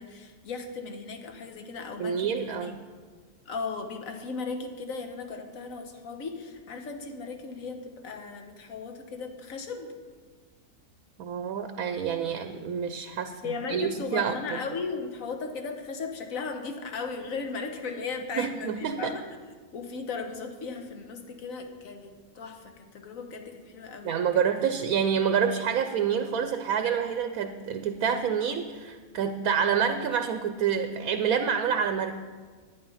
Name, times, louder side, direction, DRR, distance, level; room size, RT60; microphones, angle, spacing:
voice 1, 0.0-2.7 3.4-9.9 13.4-19.2 19.7-24.7, left 4 dB, 65° left, 5 dB, 1.5 m, -36 dB
voice 2, 2.0-2.7 11.2-13.4 13.7-14.4 18.3-19.1 24.0-32.2, right 7 dB, 75° right, 8 dB, 1.1 m, -27 dB
11.5 x 9.9 x 5.6 m, 1.6 s
omnidirectional pair, 1.6 m